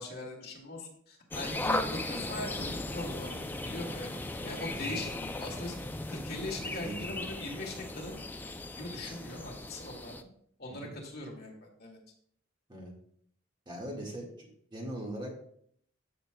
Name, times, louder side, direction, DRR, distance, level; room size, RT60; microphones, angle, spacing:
voice 1, 0.0-5.7 6.1-8.2 8.8-10.2 10.6-12.0, left 2 dB, 50° left, 0 dB, 2.1 m, -40 dB
sound 1, 1.3-10.2, left 2 dB, 10° left, 0.4 m, -37 dB
voice 2, 6.8-7.2 10.7-10.9 12.7-12.9 13.6-15.3, right 1 dB, 25° right, -1 dB, 1.7 m, -41 dB
13.5 x 6.6 x 2.2 m, 0.66 s
head